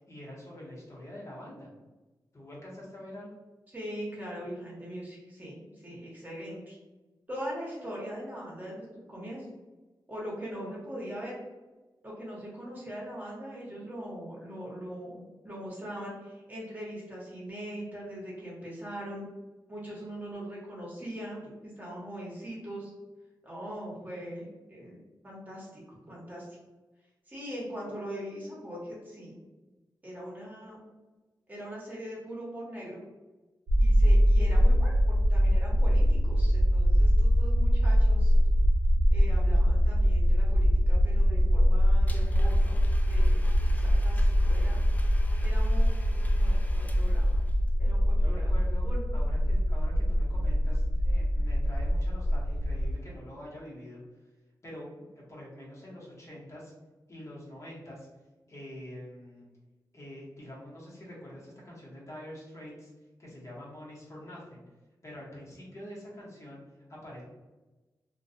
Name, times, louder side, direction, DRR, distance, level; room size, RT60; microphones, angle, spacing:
voice 1, 0.1-1.7 2.3-3.3 48.1-48.9 49.1-54.0 54.6-54.9 55.1-56.7 57.1-58.1 58.5-59.5 59.9-62.9 63.2-64.6 65.0-66.6 66.9-67.2, left 1 dB, 40° left, -6 dB, 1.0 m, -45 dB
voice 2, 3.7-6.8 7.3-9.5 10.1-11.4 12.0-19.2 19.7-22.9 23.4-26.5 27.3-29.3 30.0-30.8 31.5-33.0 33.8-38.4 39.1-42.8 43.1-44.8 45.4-47.4 47.8-48.5 48.8-49.1, equal, 20° right, -5 dB, 1.0 m, -41 dB
sound 1, 33.7-52.9, equal, 75° right, 0.5 m, -23 dB
Domestic sounds home sounds, 42.1-47.7, left 1 dB, 20° left, 0.3 m, -50 dB
2.3 x 2.2 x 2.6 m, 1.2 s
cardioid pair, 70°, 8 cm